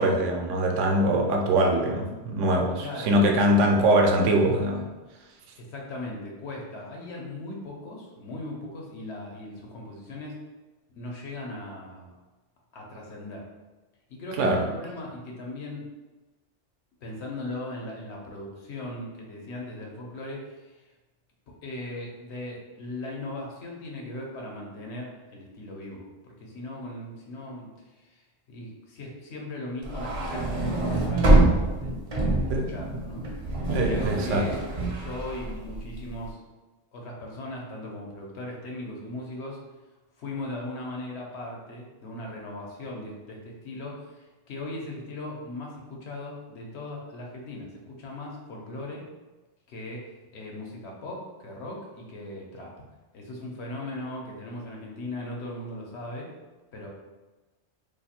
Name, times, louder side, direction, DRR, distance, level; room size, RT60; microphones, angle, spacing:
voice 1, 0.0-4.8 14.4-14.6 32.5-33.0 33.7-34.5, right 1 dB, 90° right, 1 dB, 0.9 m, -23 dB
voice 2, 2.8-3.1 5.6-10.4 10.9-12.1 12.7-13.5 14.1-15.9 17.0-20.9 21.5-33.2 33.7-34.6 34.9-36.4 36.9-39.6 40.2-49.1 49.7-52.7 53.1-56.3 56.7-56.9, left 1 dB, 70° left, -1 dB, 1.0 m, -38 dB
sound 1, 29.8-36.1, right 2 dB, 45° right, 0.4 m, -25 dB
2.6 x 2.4 x 4.2 m, 1.2 s
omnidirectional pair, 1.2 m